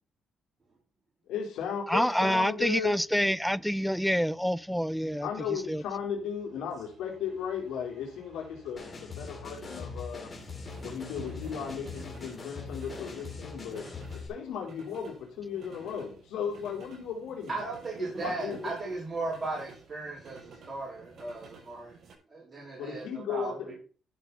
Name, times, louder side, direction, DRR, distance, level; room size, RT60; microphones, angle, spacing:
voice 1, 1.3-3.0 5.2-10.3 10.8-13.9 14.1-17.6 18.2-18.8 22.8-23.7, left 7 dB, 85° left, 4.1 m, -36 dB
voice 2, 1.9-5.3 5.7-5.8, equal, ahead, 0.4 m, -27 dB
sound 1, 2.6-22.1, right 4 dB, 65° right, 7.0 m, -52 dB
sound 2, 8.8-14.3, left 4 dB, 35° left, 3.9 m, -42 dB
voice 3, 17.5-21.9 22.3-23.5, right 3 dB, 30° right, 4.7 m, -36 dB
13.0 x 7.1 x 4.2 m
cardioid pair, 90°, 0 cm